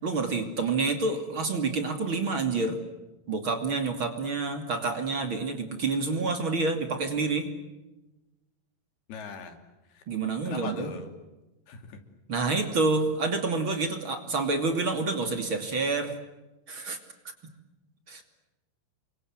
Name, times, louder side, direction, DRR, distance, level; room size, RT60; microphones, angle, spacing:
voice 1, 0.0-2.8 3.3-7.5 10.1-10.9 12.3-16.2 16.7-17.0 18.1-18.2, right 3 dB, 35° right, 6 dB, 3.1 m, -28 dB
voice 2, 9.1-9.6 9.9-10.0 10.5-11.1 11.7-12.0, left 4 dB, 85° left, 6 dB, 4.8 m, -39 dB
29.5 x 24.5 x 7.9 m, 1.1 s
omnidirectional pair, 4.4 m